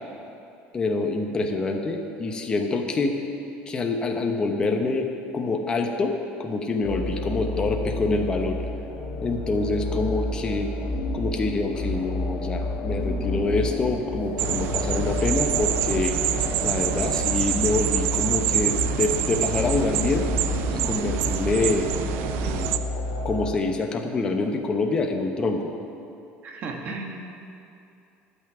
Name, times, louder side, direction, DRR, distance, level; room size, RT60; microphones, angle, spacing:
voice 1, 0.7-3.2 3.7-5.1 5.3-6.1 6.4-8.6 9.2-10.7 11.1-16.2 16.6-20.3 20.7-21.9 22.2-22.7 23.2-25.7, left 3 dB, 20° left, 3 dB, 1.0 m, -26 dB
sound 1, 6.8-23.5, left 1 dB, 60° left, 3.3 m, -30 dB
sound 2, 14.4-22.8, right 12 dB, 65° right, 0.5 m, -26 dB
voice 2, 26.4-27.3, right 3 dB, 40° right, 2 dB, 1.6 m, -35 dB
12.5 x 6.1 x 9.3 m, 2.6 s
cardioid pair, 155°, 4 cm